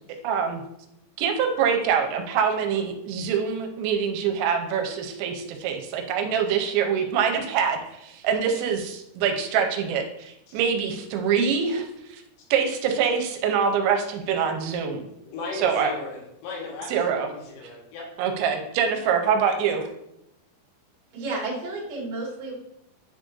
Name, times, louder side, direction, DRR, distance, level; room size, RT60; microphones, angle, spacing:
voice 1, 0.2-0.6 1.2-12.2 12.5-15.0 15.5-15.9 16.9-17.3 18.2-19.8, right 7 dB, 85° right, 4 dB, 2.9 m, -25 dB
voice 2, 15.3-18.0, left 3 dB, 70° left, -1 dB, 3.0 m, -36 dB
voice 3, 21.1-22.5, right 2 dB, 50° right, -5 dB, 2.3 m, -31 dB
9.7 x 3.8 x 2.5 m, 0.81 s
omnidirectional pair, 5.3 m